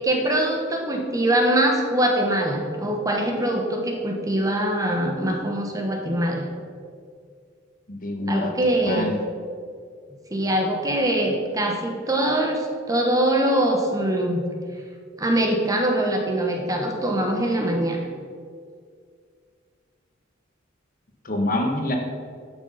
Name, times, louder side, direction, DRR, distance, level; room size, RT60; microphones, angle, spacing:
voice 1, 0.0-6.5 8.3-9.1 10.3-14.4 15.2-18.0, right 1 dB, 15° right, 2 dB, 1.2 m, -23 dB
voice 2, 7.9-8.5 8.9-9.2 21.2-22.0, left 1 dB, 45° left, 2 dB, 1.3 m, -26 dB
11.5 x 6.1 x 5.7 m, 2.1 s
head